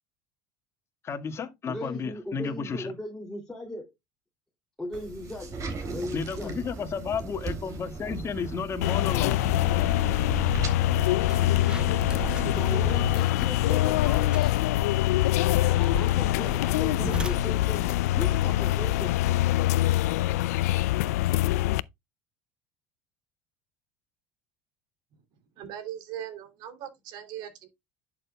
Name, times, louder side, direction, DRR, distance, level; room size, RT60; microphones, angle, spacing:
voice 1, 1.0-2.9 6.1-9.5, left 6 dB, 35° left, 1.8 m, -33 dB
voice 2, 1.6-3.9 4.8-6.7 11.8-14.6 15.5-19.1, left 1 dB, 5° left, 2.7 m, -38 dB
sound 1, 4.9-13.1, right 3 dB, 40° right, 3.7 m, -36 dB
sound 2, 8.8-21.8, left 15 dB, 90° left, 0.4 m, -24 dB
sound 3, 11.1-19.4, right 3 dB, 10° right, 0.7 m, -42 dB
voice 3, 25.6-27.7, right 10 dB, 60° right, 2.9 m, -39 dB
11.0 x 6.9 x 2.3 m
supercardioid pair, 110°, 8 cm